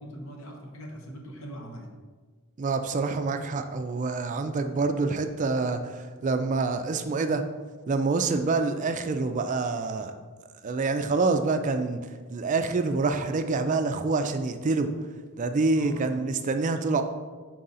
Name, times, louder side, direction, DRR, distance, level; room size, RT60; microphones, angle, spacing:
voice 1, 0.0-1.9 15.7-16.3, equal, 70° left, 1 dB, 1.1 m, -42 dB
voice 2, 2.6-7.4 7.9-10.1 10.6-12.0 12.3-14.9 15.4-17.0, right 3 dB, 35° right, 7 dB, 0.3 m, -26 dB
4.6 x 3.8 x 5.5 m, 1.4 s
head